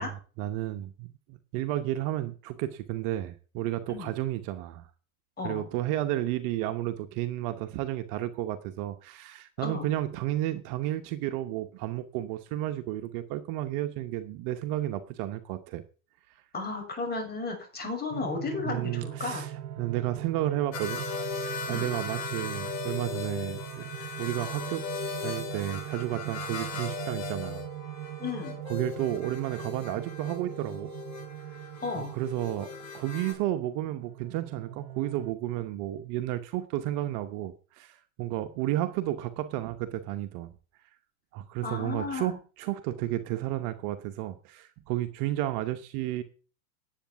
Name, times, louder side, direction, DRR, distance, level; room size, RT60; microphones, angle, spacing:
voice 1, 0.0-4.9 5.4-15.8 16.3-16.4 18.6-21.1 21.7-23.9 24.2-24.9 25.2-27.7 28.7-30.9 32.0-32.7 32.9-40.5 41.3-46.2, right 14 dB, 45° right, 10 dB, 1.0 m, -32 dB
voice 2, 5.4-5.7 9.6-9.9 16.5-19.4 21.7-21.9 28.2-28.5 31.8-32.1 41.6-42.4, left 4 dB, 20° left, 2 dB, 6.8 m, -34 dB
sound 1, 18.1-35.3, right 11 dB, 70° right, 1.1 m, -41 dB
sound 2, 20.7-33.3, left 5 dB, 35° left, 6.3 m, -38 dB
10.0 x 8.3 x 7.0 m, 0.38 s
hypercardioid pair, 115°, 45 cm